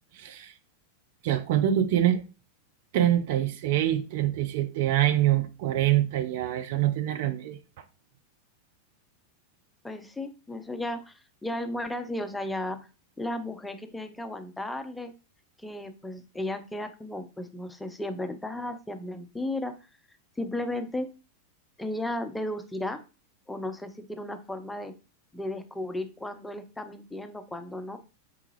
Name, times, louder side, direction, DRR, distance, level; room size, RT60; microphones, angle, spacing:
voice 1, 0.2-0.5 1.2-2.2 2.9-7.6, right 12 dB, 50° right, 0.4 m, -25 dB
voice 2, 9.8-12.8 13.2-15.1 15.6-19.8 20.4-21.1 21.8-23.0 23.5-24.9 25.3-28.0, left 1 dB, 5° left, 0.4 m, -34 dB
4.7 x 2.3 x 3.1 m
figure-of-eight pair, 90°, 0 cm